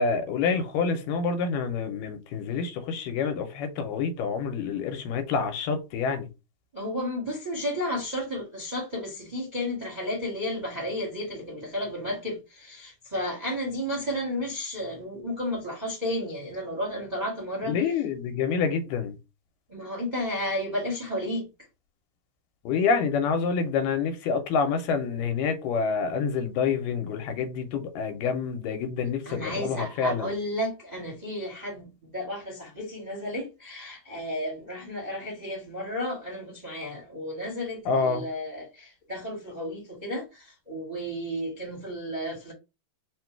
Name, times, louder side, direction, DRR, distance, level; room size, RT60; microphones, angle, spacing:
voice 1, 0.0-6.3 17.6-19.2 22.7-30.3 37.9-38.2, left 5 dB, 80° left, 2.4 m, -27 dB
voice 2, 6.7-17.8 19.7-21.5 29.2-42.5, left 1 dB, 25° right, 1.0 m, -33 dB
5.1 x 2.2 x 4.4 m
omnidirectional pair, 3.8 m